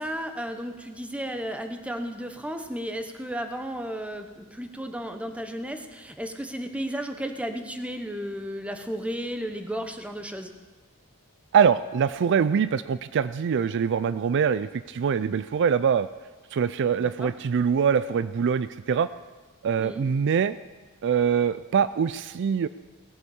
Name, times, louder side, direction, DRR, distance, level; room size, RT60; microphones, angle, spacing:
voice 1, 0.0-10.5 17.0-17.3 19.8-20.1, equal, 5° right, 6 dB, 1.0 m, -34 dB
voice 2, 11.5-16.1 16.5-19.1 19.6-20.6 21.0-22.7, right 7 dB, 55° right, 15 dB, 0.4 m, -23 dB
18.0 x 8.0 x 7.1 m, 1.3 s
head